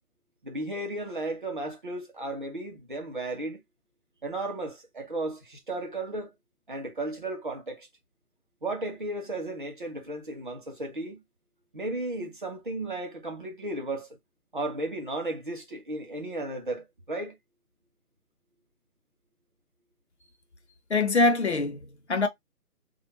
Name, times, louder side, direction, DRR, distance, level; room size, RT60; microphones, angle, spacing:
voice 1, 0.4-3.6 4.2-6.3 6.7-7.9 8.6-11.2 11.7-14.1 14.5-17.4, right 2 dB, 35° right, 0.6 m, -34 dB
voice 2, 20.9-22.3, left 3 dB, 50° left, 0.5 m, -24 dB
3.3 x 2.3 x 2.9 m
figure-of-eight pair, 145°, 45 cm